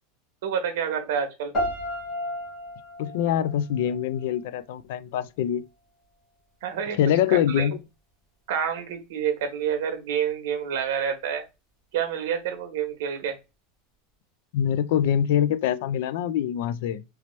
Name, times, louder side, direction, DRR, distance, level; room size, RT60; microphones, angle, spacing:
voice 1, 0.4-1.5 6.6-7.0 7.5-7.6 8.5-11.4 11.9-13.4, right 8 dB, 65° right, 1.0 m, -28 dB
sound 1, 1.5-4.5, left 1 dB, 20° left, 1.7 m, -33 dB
voice 2, 3.0-5.6 7.0-7.8 14.5-17.0, left 10 dB, 60° left, 0.3 m, -24 dB
3.1 x 2.9 x 3.1 m
supercardioid pair, 175°, 0 cm